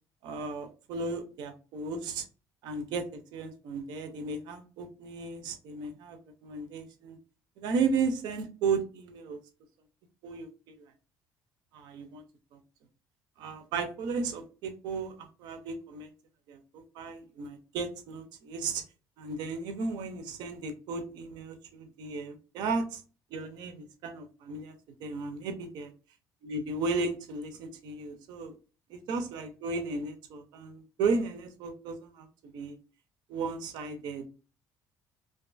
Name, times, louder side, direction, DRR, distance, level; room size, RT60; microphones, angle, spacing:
voice 1, 0.2-2.2 2.6-7.2 7.6-9.4 10.2-10.5 11.7-12.2 13.4-16.1 16.5-18.8 19.2-23.0 23.3-24.7 25.0-25.9 26.4-28.5 28.9-32.8 33.3-34.3, right 4 dB, 75° right, 7 dB, 0.5 m, -34 dB
2.5 x 2.3 x 2.4 m, 0.35 s
cardioid pair, 135°, 7 cm